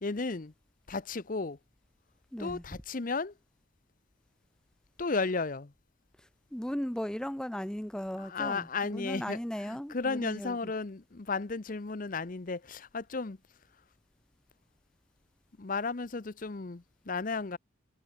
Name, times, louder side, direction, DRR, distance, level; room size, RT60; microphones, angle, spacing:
voice 1, 0.0-0.5 0.9-1.6 2.4-3.3 5.0-5.7 8.2-9.4 9.7-13.4 15.6-17.6, left 4 dB, 45° left, 0.7 m, -34 dB
voice 2, 2.3-2.6 6.2-10.7, equal, 5° left, 0.5 m, -37 dB
head